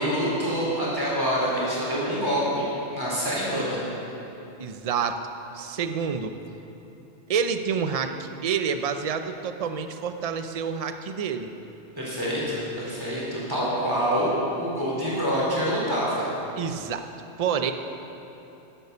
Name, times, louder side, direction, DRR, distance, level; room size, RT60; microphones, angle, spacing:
voice 1, 0.0-3.8 12.0-16.3, equal, 20° right, -7 dB, 3.7 m, -26 dB
voice 2, 4.6-5.2 5.5-6.3 7.3-11.5 16.6-17.1 17.4-17.7, right 6 dB, 40° right, 8 dB, 0.6 m, -28 dB
11.0 x 10.0 x 6.9 m, 3.0 s
omnidirectional pair, 1.2 m